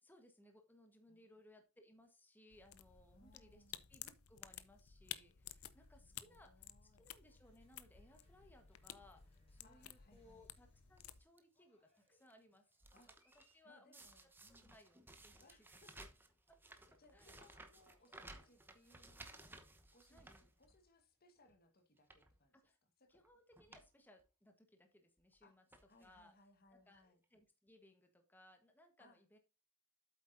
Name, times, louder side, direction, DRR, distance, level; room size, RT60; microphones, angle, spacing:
voice 1, 0.0-3.6 3.9-12.7 13.3-14.3 14.6-15.7 16.5-16.6 17.1-17.4 20.1-20.3 22.5-22.8 23.1-25.6 26.0-26.3 26.7-29.4, left 1 dB, 10° left, 1.2 m, -66 dB
voice 2, 1.1-1.4 3.1-3.8 6.0-7.1 9.6-10.5 12.9-13.1 13.6-14.7 15.3-16.1 17.0-19.5 19.9-22.6 23.0-23.2 23.7-23.8 25.4-25.6 25.9-27.2 29.0-29.4, left 2 dB, 45° left, 1.4 m, -69 dB
sound 1, 2.5-11.2, left 11 dB, 70° left, 0.7 m, -54 dB
Cheering, 7.2-22.4, left 1 dB, 25° left, 3.6 m, -80 dB
sound 2, 11.0-11.4 12.0-13.5 13.9-21.0 21.4-21.5 22.0-22.3 23.2-23.3 23.5-23.9 24.2-24.3 25.2-25.3 25.7-26.2 27.0-27.1 27.2-27.3, right 2 dB, 10° right, 0.9 m, -59 dB
8.4 x 8.0 x 2.6 m
head